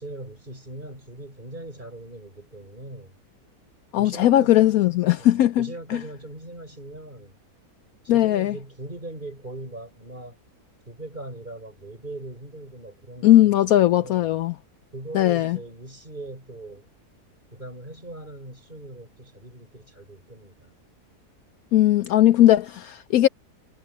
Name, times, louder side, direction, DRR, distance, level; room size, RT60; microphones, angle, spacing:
voice 1, 0.0-3.2 4.0-7.4 8.0-10.4 10.9-14.3 14.9-16.9 17.5-20.7, right 2 dB, 30° right, 7.1 m, -40 dB
voice 2, 3.9-6.0 8.1-8.5 13.2-14.5 15.1-15.6 21.7-23.3, left 13 dB, 70° left, 1.0 m, -18 dB
omnidirectional pair, 1.7 m